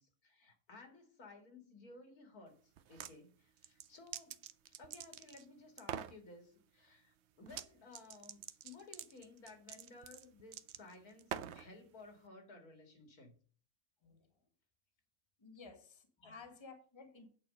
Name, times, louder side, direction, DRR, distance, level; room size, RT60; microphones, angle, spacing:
voice 1, 0.0-4.4 4.8-13.3 16.2-16.3, left 3 dB, 75° left, 5 dB, 2.6 m, -57 dB
sound 1, 2.8-3.1 3.6-5.4 5.8-6.2 7.5-7.7 7.9-11.7, right 10 dB, 60° right, 0.7 m, -46 dB
voice 2, 14.0-14.4 15.4-17.3, left 4 dB, 20° left, 6 dB, 1.5 m, -55 dB
9.0 x 4.4 x 6.4 m, 0.42 s
omnidirectional pair, 1.6 m